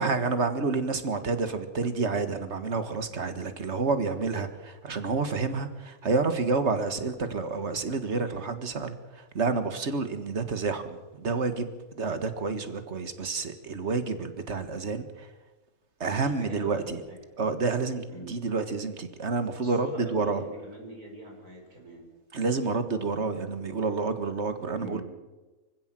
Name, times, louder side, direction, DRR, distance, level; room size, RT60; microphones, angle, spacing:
voice 1, 0.0-15.3 16.0-17.0 17.4-20.4 22.3-25.0, right 4 dB, 50° right, 10 dB, 1.9 m, -29 dB
voice 2, 16.2-17.2 18.1-18.3 19.6-22.0 24.8-25.0, right 1 dB, 80° right, 0 dB, 5.6 m, -42 dB
25.0 x 15.5 x 7.6 m, 1.2 s
omnidirectional pair, 1.6 m